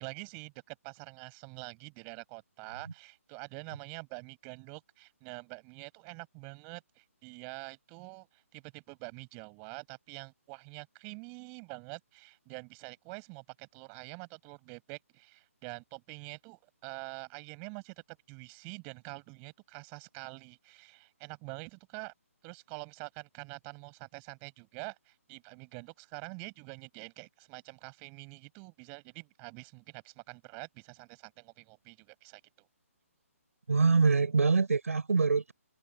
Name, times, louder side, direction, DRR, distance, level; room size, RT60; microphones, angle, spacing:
voice 1, 0.0-22.1 22.4-32.7, right 40 dB or more, 25° right, 7.8 m, -46 dB
voice 2, 33.7-35.5, right 4 dB, 70° right, 5.5 m, -24 dB
figure-of-eight pair, 145°, 8 cm